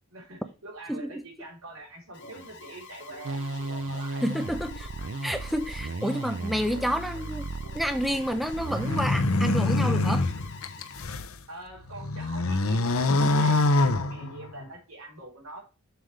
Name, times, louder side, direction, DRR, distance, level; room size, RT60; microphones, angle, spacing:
voice 1, 0.1-4.2 11.5-15.6, right 2 dB, 80° right, 3.9 m, -44 dB
voice 2, 0.9-1.2 4.2-4.9 5.2-7.5 7.7-10.3, equal, ahead, 0.6 m, -29 dB
Alarm, 2.1-11.0, left 4 dB, 55° left, 2.0 m, -46 dB
sound 1, 3.2-9.1, right 3 dB, 65° right, 0.6 m, -35 dB
sound 2, 8.7-11.3 11.8-14.6, left 2 dB, 85° left, 0.9 m, -25 dB
7.6 x 7.1 x 3.3 m
head